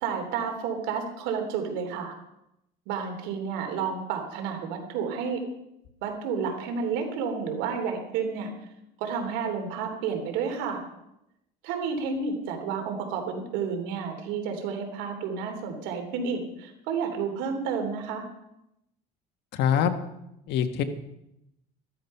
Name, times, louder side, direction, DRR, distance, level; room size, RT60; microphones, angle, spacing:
voice 1, 0.0-2.1 2.9-5.4 6.0-8.5 9.0-10.8 11.6-18.2, right 6 dB, 90° right, 4 dB, 3.3 m, -31 dB
voice 2, 19.5-19.9 20.5-20.8, left 8 dB, 65° left, 7 dB, 1.6 m, -23 dB
13.5 x 13.0 x 5.6 m, 0.83 s
cardioid pair, 130°, 18 cm